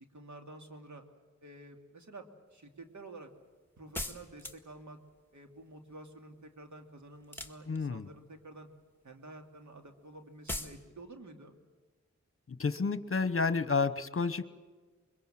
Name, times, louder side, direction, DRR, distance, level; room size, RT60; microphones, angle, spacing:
voice 1, 0.1-1.0 1.4-3.3 3.8-5.0 5.3-8.7 9.0-11.5, right 2 dB, 80° right, 4 dB, 2.7 m, -50 dB
sound 1, 3.9-4.8 7.2-8.1 10.5-10.8, left 2 dB, 5° left, 1.9 m, -39 dB
voice 2, 7.7-8.1 12.5-14.5, left 4 dB, 50° left, 13 dB, 1.1 m, -30 dB
25.0 x 22.5 x 7.6 m, 1.4 s
wide cardioid pair, 60°, 29 cm